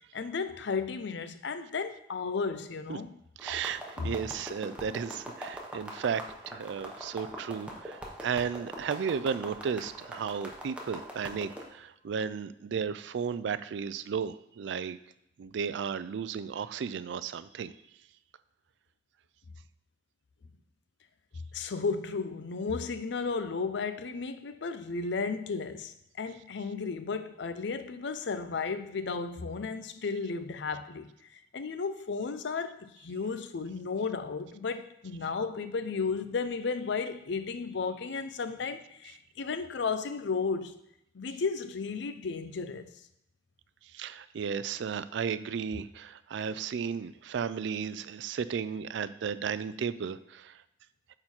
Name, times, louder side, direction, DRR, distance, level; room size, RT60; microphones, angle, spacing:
voice 1, 0.1-3.2 4.0-4.1 21.5-31.1 31.5-40.7 41.1-42.9, left 4 dB, 70° left, 0.5 m, -34 dB
sound 1, 3.4-11.7, right 1 dB, 5° right, 1.0 m, -42 dB
voice 2, 3.4-15.0 15.4-17.7 43.9-50.6, right 6 dB, 70° right, 0.3 m, -34 dB
8.8 x 3.9 x 4.4 m
head